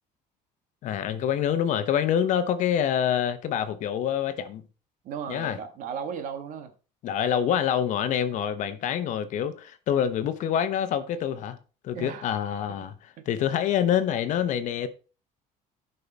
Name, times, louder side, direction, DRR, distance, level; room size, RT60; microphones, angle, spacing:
voice 1, 0.8-4.6 5.3-5.6 7.0-11.6 11.8-12.9 13.3-14.9, left 9 dB, 55° left, 1.0 m, -26 dB
voice 2, 5.0-6.7 11.9-12.3 12.7-12.8, right 7 dB, 55° right, 1.5 m, -36 dB
11.5 x 5.6 x 4.1 m
cardioid pair, 150°, 15 cm